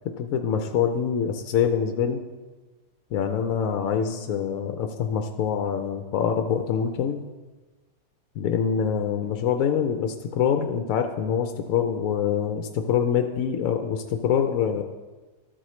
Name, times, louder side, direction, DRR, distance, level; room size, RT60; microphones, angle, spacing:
voice 1, 0.2-2.2 3.1-7.2 8.4-14.8, left 8 dB, 70° left, 6 dB, 0.8 m, -25 dB
13.0 x 7.8 x 3.2 m, 1.3 s
omnidirectional pair, 2.0 m